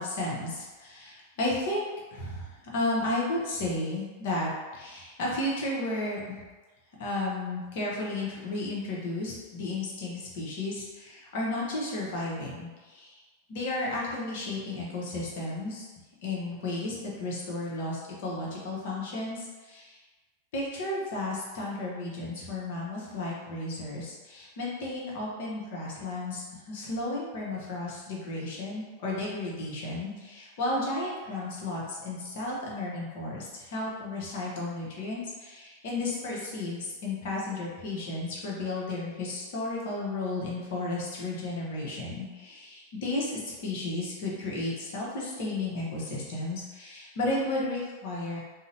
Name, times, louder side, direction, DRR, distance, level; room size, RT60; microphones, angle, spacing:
voice 1, 0.0-6.2 7.0-13.2 13.5-15.9 16.2-20.0 20.5-48.4, left 2 dB, 60° left, -4 dB, 0.8 m, -33 dB
2.6 x 2.0 x 2.7 m, 1.3 s
hypercardioid pair, 95°, 0 cm